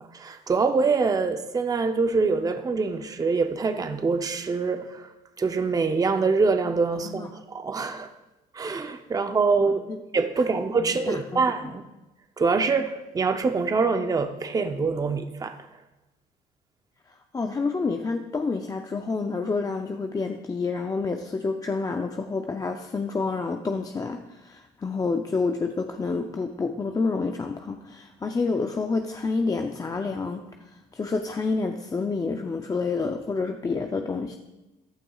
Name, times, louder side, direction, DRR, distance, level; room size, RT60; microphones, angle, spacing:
voice 1, 0.0-5.1 5.4-8.1 8.5-9.8 10.1-11.8 12.4-15.5, right 4 dB, 20° right, 7 dB, 0.6 m, -25 dB
voice 2, 9.6-10.0 11.1-11.5 17.1-34.4, left 4 dB, 20° left, 4 dB, 0.5 m, -29 dB
15.0 x 11.0 x 2.4 m, 1.0 s
cardioid pair, 110°, 17 cm